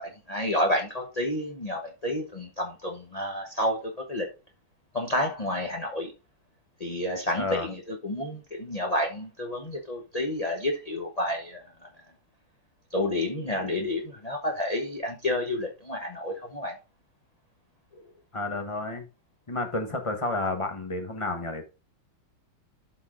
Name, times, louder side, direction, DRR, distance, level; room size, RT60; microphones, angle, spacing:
voice 1, 0.3-4.3 4.9-6.1 6.8-11.9 12.9-16.8 17.9-18.0, left 1 dB, 75° left, 0.3 m, -30 dB
voice 2, 7.4-7.7 18.3-19.1 19.5-21.6, left 2 dB, 25° left, 0.7 m, -30 dB
12.0 x 4.2 x 3.7 m
omnidirectional pair, 2.3 m